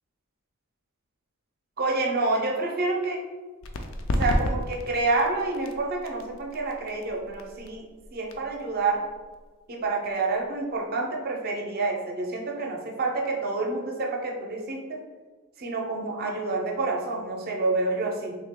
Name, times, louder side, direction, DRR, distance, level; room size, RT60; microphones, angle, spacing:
voice 1, 1.8-3.2 4.2-9.0 9.7-15.0 15.6-18.4, right 3 dB, 45° right, 0 dB, 0.6 m, -28 dB
sound 1, 3.6-10.9, left 1 dB, 60° left, 0.4 m, -33 dB
3.4 x 2.8 x 3.6 m, 1.4 s
head